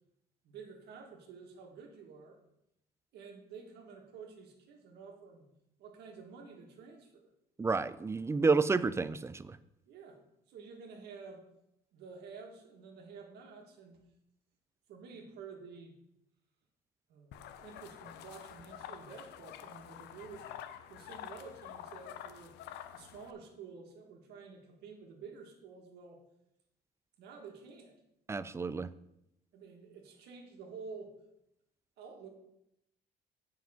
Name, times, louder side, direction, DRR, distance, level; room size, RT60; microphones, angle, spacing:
voice 1, 0.4-2.4 3.1-5.5 5.8-7.3 9.9-11.5 11.9-14.1 14.9-15.9 17.1-20.5 20.9-22.6 22.9-26.2 27.2-27.9 29.5-31.1 32.0-32.3, right 5 dB, 75° right, 2 dB, 1.8 m, -50 dB
voice 2, 7.6-9.6 28.3-28.9, right 4 dB, 15° right, 15 dB, 0.4 m, -30 dB
sound 1, 17.3-23.3, left 10 dB, 85° left, 0.6 m, -48 dB
7.6 x 5.7 x 5.7 m, 0.82 s
cardioid pair, 110°, 17 cm